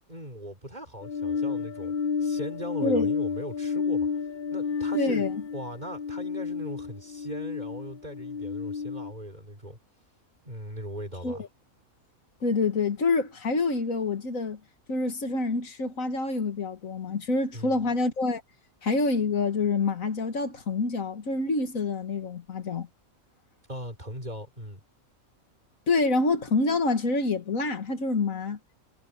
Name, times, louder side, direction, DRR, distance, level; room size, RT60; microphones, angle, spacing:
voice 1, 0.1-4.1 4.5-5.3 5.5-9.8 10.5-11.4 17.5-17.9 23.7-24.8, equal, 30° right, 5.5 m, -39 dB
sound 1, 1.0-9.1, left 5 dB, 55° left, 0.6 m, -31 dB
voice 2, 4.9-5.3 11.2-11.5 12.4-14.6 14.9-18.4 18.8-22.9 25.9-28.6, left 3 dB, 70° left, 2.2 m, -27 dB
omnidirectional pair, 1.5 m